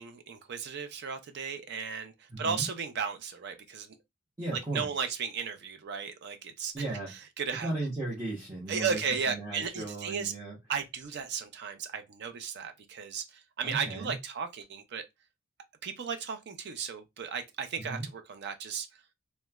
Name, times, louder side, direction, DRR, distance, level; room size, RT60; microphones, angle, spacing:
voice 1, 0.0-4.0 4.5-6.7 7.4-7.7 8.7-10.3 10.7-15.0 15.8-18.9, right 6 dB, 50° right, 0.4 m, -35 dB
voice 2, 2.3-2.7 4.4-4.9 6.7-7.2 7.6-9.0 9.3-10.6 13.6-14.1 17.8-18.1, right 2 dB, 15° right, 0.7 m, -36 dB
2.9 x 2.1 x 2.2 m
head